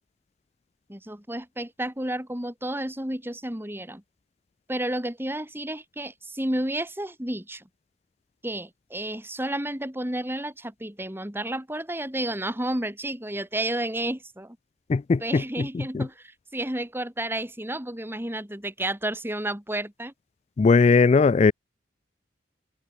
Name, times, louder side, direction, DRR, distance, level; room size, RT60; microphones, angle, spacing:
voice 1, 0.9-4.0 4.7-7.6 8.4-14.6 15.2-20.1, right 1 dB, 10° right, 3.2 m, -31 dB
voice 2, 14.9-16.1 20.6-21.5, left 4 dB, 35° left, 0.3 m, -20 dB
head